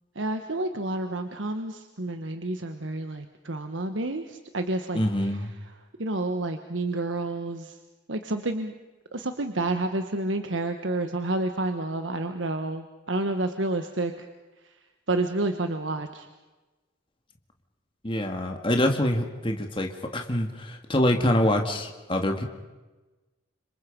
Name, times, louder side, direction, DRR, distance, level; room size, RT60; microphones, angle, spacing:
voice 1, 0.1-5.3 6.0-7.8 8.1-8.7 9.1-14.3 15.1-16.3, right 2 dB, 75° right, 7 dB, 1.3 m, -29 dB
voice 2, 4.9-5.5 18.0-22.4, left 1 dB, 25° left, 4 dB, 2.0 m, -25 dB
30.0 x 26.5 x 5.3 m, 1.2 s
head